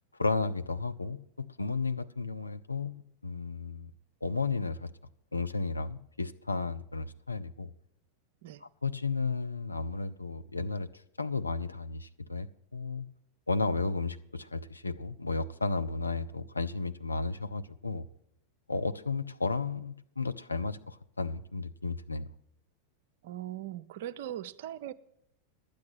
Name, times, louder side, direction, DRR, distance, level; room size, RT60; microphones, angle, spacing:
voice 1, 0.1-3.9 4.2-4.9 5.3-7.7 8.6-10.9 11.2-13.1 13.5-18.1 18.7-22.2, left 3 dB, 80° left, 0.5 m, -33 dB
voice 2, 23.2-24.9, right 12 dB, 55° right, 0.5 m, -40 dB
12.0 x 8.5 x 6.1 m
figure-of-eight pair, 90°, 0 cm